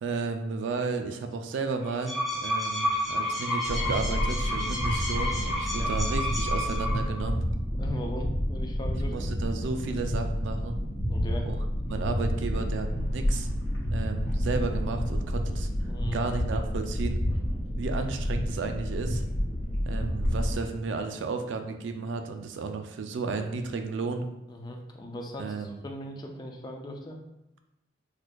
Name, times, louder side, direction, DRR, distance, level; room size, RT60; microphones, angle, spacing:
voice 1, 0.0-7.4 9.1-10.8 11.4-11.6 11.9-13.5 13.9-15.7 16.1-17.2 17.8-19.2 19.8-24.3 25.4-25.8, right 4 dB, 75° right, 6 dB, 0.3 m, -33 dB
sound 1, 1.8-7.2, left 1 dB, ahead, 0.7 m, -30 dB
sound 2, 3.6-20.5, equal, 80° left, 1.1 m, -29 dB
voice 2, 5.6-5.9 7.8-9.3 11.1-11.5 15.8-16.2 24.5-27.2, equal, 20° left, 2 dB, 0.3 m, -39 dB
4.2 x 2.4 x 2.2 m, 0.89 s
head